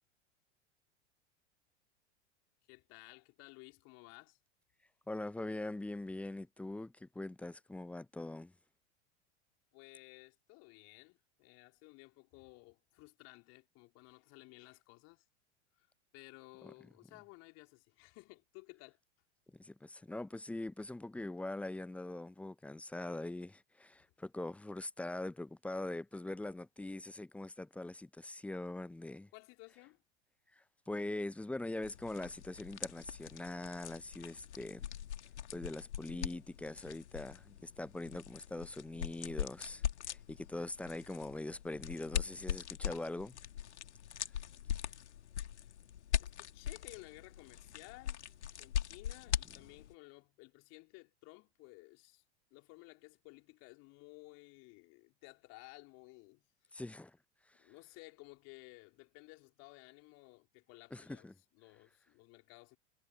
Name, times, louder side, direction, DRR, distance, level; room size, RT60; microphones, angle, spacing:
voice 1, 2.7-4.4 9.7-15.2 15.7-15.9 16.1-19.0 29.3-30.0 45.6-45.8 46.2-48.3 48.6-52.2 52.5-56.8 57.6-61.3 61.5-62.8, left 26 dB, 45° left, 4.0 m, -56 dB
voice 2, 5.1-8.5 16.6-16.7 19.6-29.3 30.5-34.8 35.5-43.4 56.7-57.2 57.5-57.7 60.9-61.3, left 2 dB, 5° left, 0.6 m, -42 dB
sound 1, 31.8-49.9, left 10 dB, 70° left, 2.3 m, -41 dB
figure-of-eight pair, 85°, 35 cm